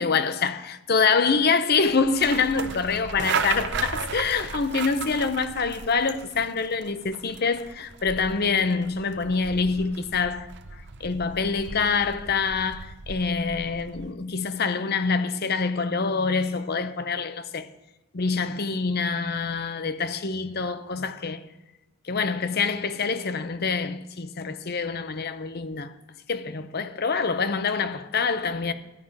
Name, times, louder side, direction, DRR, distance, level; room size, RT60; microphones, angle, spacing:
voice 1, 0.0-10.5 10.7-17.7 18.1-21.4 22.1-25.9 26.3-28.7, left 5 dB, 45° left, 0.7 m, -26 dB
sound 1, 1.9-14.1, right 6 dB, 55° right, 0.6 m, -35 dB
12.5 x 5.5 x 8.8 m
head